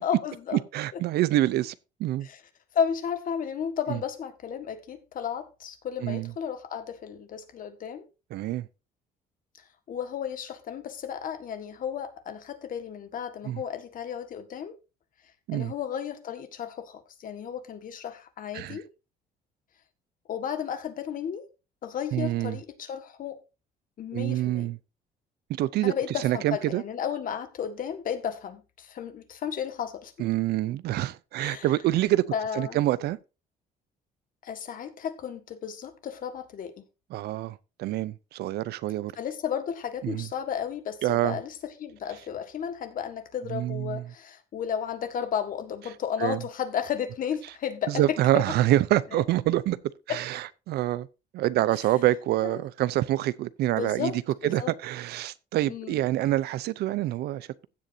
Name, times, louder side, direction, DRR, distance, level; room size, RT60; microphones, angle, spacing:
voice 1, 0.0-0.6 0.9-1.0 2.2-2.4 2.7-8.1 9.9-14.7 15.5-18.8 20.3-21.5 21.8-23.4 24.0-24.7 25.8-30.1 31.4-31.7 32.3-32.8 34.4-36.8 39.1-48.5 49.1-49.2 50.1-50.2 51.8-51.9 52.4-52.7 53.8-54.7 55.7-56.0, left 8 dB, 55° left, 1.7 m, -33 dB
voice 2, 0.7-1.7 2.0-2.3 3.9-4.0 6.0-6.3 8.3-8.7 13.5-13.6 15.5-15.7 18.5-18.8 22.1-22.6 24.1-24.8 25.6-25.9 26.2-26.8 30.2-32.2 32.5-33.2 37.1-39.1 40.0-40.3 41.0-41.4 43.5-44.0 46.2-46.4 47.9-49.8 50.1-51.1 51.3-54.1 54.4-57.7, right 14 dB, 75° right, 0.6 m, -26 dB
15.5 x 7.9 x 2.7 m
cardioid pair, 110°, 17 cm